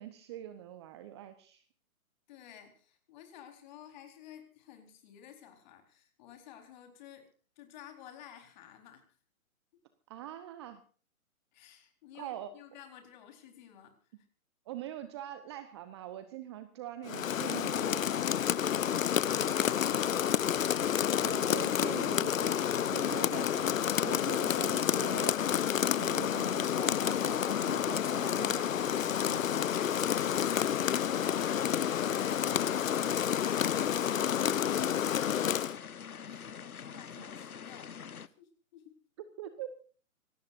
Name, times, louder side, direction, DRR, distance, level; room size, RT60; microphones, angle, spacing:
voice 1, 0.0-1.6 10.1-10.8 12.2-12.5 14.7-18.0 21.2-23.7 24.0-25.4 25.9-30.0 39.4-39.7, right 12 dB, 20° right, 11 dB, 0.9 m, -44 dB
voice 2, 2.3-7.3 7.6-9.0 11.5-14.0 19.1-20.3 36.3-38.0 38.4-39.0, left 10 dB, 30° left, 6 dB, 4.3 m, -53 dB
Rain, 17.1-35.8, left 9 dB, 65° left, 0.8 m, -29 dB
sound 1, 29.7-38.3, left 7 dB, 80° left, 1.3 m, -45 dB
26.0 x 18.0 x 2.6 m, 0.40 s
hypercardioid pair, 150°, 43 cm